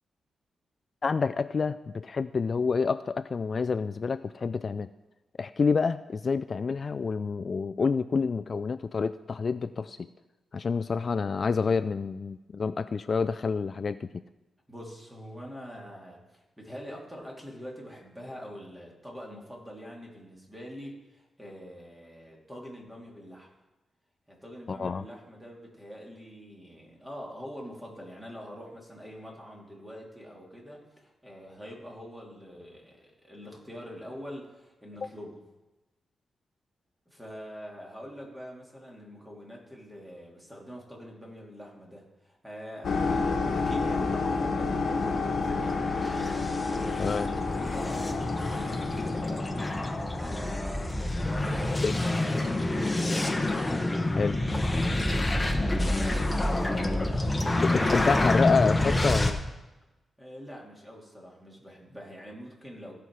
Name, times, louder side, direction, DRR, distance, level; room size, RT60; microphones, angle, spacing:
voice 1, 1.0-4.9 5.4-10.1 10.5-14.2 24.7-25.0 47.0-47.3 51.8-51.9 54.1-54.4 57.5-59.4, left 5 dB, 45° left, 13 dB, 0.3 m, -28 dB
voice 2, 14.7-23.5 24.3-35.4 37.1-46.1 46.4-49.9 50.2-53.1 55.0-57.7 60.2-63.0, equal, 10° right, -2 dB, 2.9 m, -45 dB
sound 1, 42.8-50.5, left 4 dB, 65° left, 1.2 m, -30 dB
sound 2, 44.9-59.3, left 1 dB, 15° left, 1.1 m, -28 dB
16.0 x 5.7 x 4.8 m, 1.1 s
cardioid pair, 85°, 0 cm